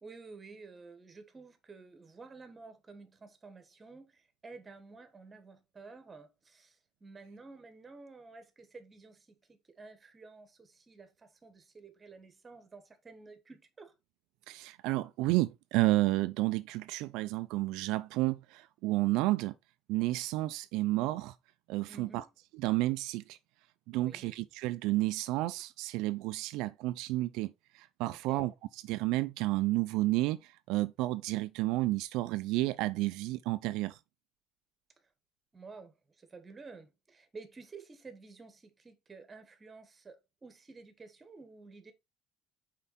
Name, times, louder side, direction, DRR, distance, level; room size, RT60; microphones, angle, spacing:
voice 1, 0.0-13.9 21.9-22.2 24.0-24.3 28.3-28.5 35.5-41.9, right 4 dB, 15° right, 1.2 m, -52 dB
voice 2, 14.5-19.5 19.9-21.3 21.7-22.2 22.6-23.4 23.9-34.0, right 18 dB, 75° right, 0.4 m, -31 dB
5.6 x 4.6 x 4.0 m
cardioid pair, 160°, 0 cm